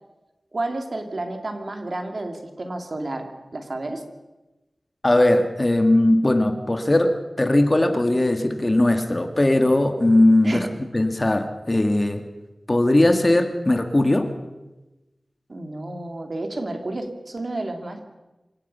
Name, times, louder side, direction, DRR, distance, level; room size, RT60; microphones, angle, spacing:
voice 1, 0.5-4.0 10.4-10.7 15.5-18.0, right 2 dB, 50° right, 5 dB, 2.8 m, -31 dB
voice 2, 5.0-10.7 10.9-12.2 12.7-14.3, left 1 dB, 30° left, 6 dB, 2.0 m, -19 dB
27.5 x 17.5 x 5.7 m, 1.1 s
wide cardioid pair, 70°, 0 cm